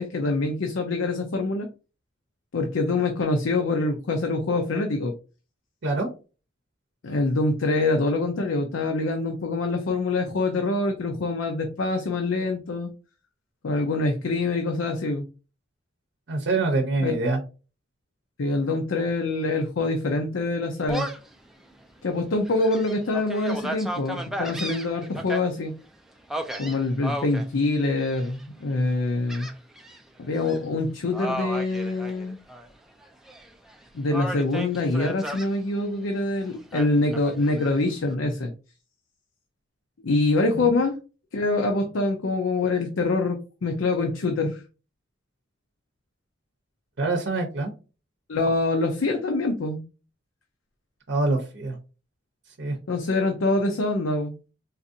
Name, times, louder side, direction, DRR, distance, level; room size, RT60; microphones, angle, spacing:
voice 1, 0.0-1.7 2.5-5.1 7.0-12.9 13.6-15.2 17.0-17.1 18.4-21.1 22.0-25.7 26.6-29.5 30.2-32.4 33.9-38.5 40.0-40.9 41.3-44.6 48.3-49.8 52.9-54.3, left 2 dB, 90° left, 3 dB, 0.5 m, -25 dB
voice 2, 16.3-17.4 40.5-40.7 47.0-47.7 51.1-51.8 52.6-52.8, right 3 dB, 65° right, 2 dB, 0.7 m, -25 dB
Gull seagull, 20.9-21.3 21.8-21.9 22.4-25.4 26.3-27.4 28.0-28.4 29.3-30.0 30.3-30.6 31.1-32.7 33.0-33.7 34.1-35.5 36.7-37.7, right 1 dB, ahead, 0.3 m, -34 dB
4.0 x 2.5 x 2.6 m, 0.33 s
head